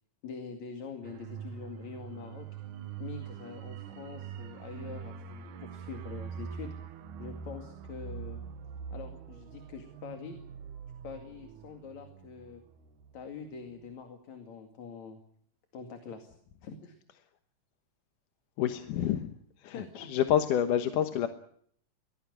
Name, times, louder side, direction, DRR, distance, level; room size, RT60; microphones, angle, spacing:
voice 1, 0.2-2.5 3.0-6.7 7.2-8.4 8.9-10.4 11.0-12.6 13.1-15.2 15.7-16.3 16.6-17.0 19.7-20.1, left 5 dB, 60° left, 5 dB, 3.5 m, -44 dB
sound 1, 1.0-13.4 13.7-13.9, right 7 dB, 70° right, 2.7 m, -44 dB
voice 2, 18.6-19.3 19.6-21.3, left 10 dB, 80° left, 8 dB, 2.7 m, -28 dB
23.0 x 18.0 x 9.8 m, 0.66 s
omnidirectional pair, 3.7 m